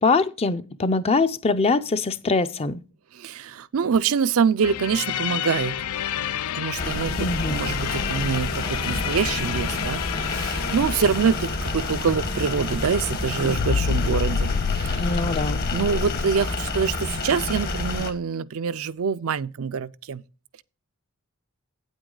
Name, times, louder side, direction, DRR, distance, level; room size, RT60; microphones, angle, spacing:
voice 1, 0.0-2.8 7.2-7.6 15.0-15.6, left 3 dB, 30° left, 0.5 m, -23 dB
voice 2, 3.1-5.8 6.5-15.2 15.7-20.2, right 6 dB, 70° right, 0.4 m, -25 dB
sound 1, 4.6-13.2 13.5-16.3, left 7 dB, 85° left, 0.4 m, -30 dB
sound 2, 6.7-13.5, left 3 dB, 65° left, 1.5 m, -39 dB
sound 3, 6.8-18.1, left 3 dB, 45° left, 1.2 m, -29 dB
9.0 x 8.1 x 3.8 m
head